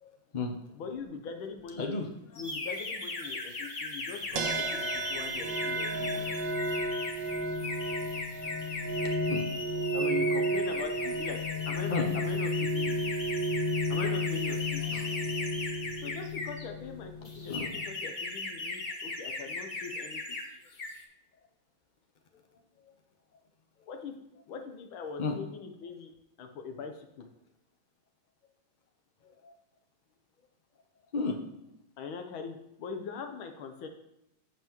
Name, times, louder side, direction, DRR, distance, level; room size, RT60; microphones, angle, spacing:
voice 1, 0.0-0.6 1.8-2.4 9.0-9.8 11.9-12.1 14.8-15.5 17.5-17.7 25.2-25.4 29.2-29.5 31.1-31.4, left 3 dB, 60° left, 3 dB, 0.4 m, -35 dB
voice 2, 0.8-2.0 2.3-6.3 9.9-11.4 11.7-13.1 13.9-15.0 16.0-20.4 23.9-24.1 24.5-26.1 26.4-27.3 32.0-33.9, left 6 dB, 85° left, 5 dB, 1.7 m, -41 dB
sound 1, 2.4-16.6 17.2-20.4 20.7-21.0, left 3 dB, 35° left, 0.9 m, -38 dB
sound 2, 4.4-17.9, equal, 70° right, 1.7 m, -32 dB
15.0 x 5.7 x 3.0 m, 0.86 s
omnidirectional pair, 2.2 m